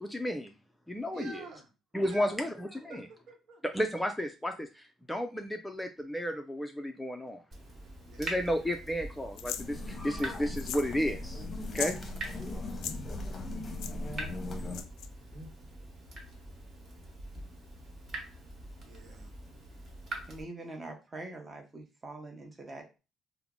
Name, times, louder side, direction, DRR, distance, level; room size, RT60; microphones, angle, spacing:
voice 1, 0.0-0.5 0.9-1.5 1.9-3.1 3.7-7.4 8.2-11.4 11.7-11.9, equal, 5° left, 0.4 m, -33 dB
voice 2, 1.1-1.7 2.0-2.5 2.9-3.6 8.1-8.3 9.5-9.7 12.7-13.0 15.2-15.5 18.8-19.3, right 3 dB, 55° right, 1.0 m, -48 dB
Water tap faucet / Drip, 7.5-20.4, right 1 dB, 40° right, 1.3 m, -45 dB
sound 1, 9.4-9.7 10.5-10.9 11.2-11.3 11.6-12.0 12.7-13.0 13.8-13.9 14.7-15.1, left 10 dB, 85° left, 0.3 m, -37 dB
sound 2, 9.6-14.8, left 2 dB, 30° left, 0.8 m, -39 dB
voice 3, 20.3-23.0, right 2 dB, 20° right, 0.8 m, -44 dB
3.4 x 2.0 x 3.6 m
cardioid pair, 125°, 0 cm